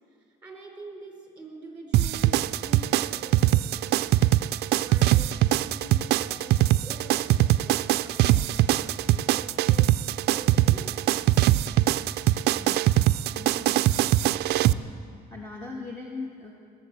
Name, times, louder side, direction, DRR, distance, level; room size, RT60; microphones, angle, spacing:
voice 1, 0.4-4.3 4.8-11.1, right 3 dB, 10° right, 0 dB, 4.2 m, -46 dB
sound 1, 1.9-14.7, right 15 dB, 75° right, 0.4 m, -22 dB
voice 2, 12.6-13.8 15.3-16.5, left 3 dB, 15° left, -2 dB, 1.6 m, -40 dB
20.5 x 7.6 x 7.2 m, 2.5 s
cardioid pair, 110°, 17 cm